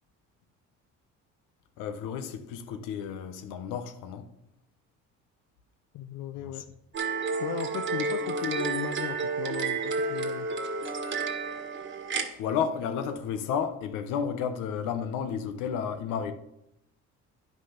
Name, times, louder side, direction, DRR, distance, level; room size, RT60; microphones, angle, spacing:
voice 1, 1.8-4.3 6.4-6.6 12.4-16.3, left 7 dB, 90° left, 1.1 m, -32 dB
voice 2, 5.9-6.7 7.4-10.5, left 10 dB, 70° left, 0.7 m, -36 dB
sound 1, 6.9-12.3, right 4 dB, 40° right, 1.5 m, -31 dB
9.6 x 6.1 x 5.8 m
cardioid pair, 95°, 30 cm